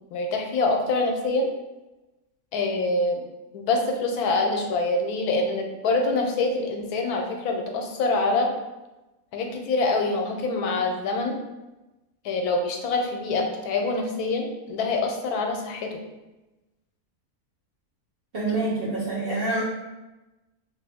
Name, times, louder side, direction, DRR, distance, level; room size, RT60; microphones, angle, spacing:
voice 1, 0.1-1.5 2.5-3.2 3.5-8.5 9.3-11.4 12.2-16.0, left 3 dB, 90° left, 3 dB, 1.1 m, -25 dB
voice 2, 18.3-19.6, right 2 dB, 55° right, -6 dB, 0.7 m, -26 dB
3.2 x 2.4 x 3.4 m, 1.0 s
omnidirectional pair, 1.6 m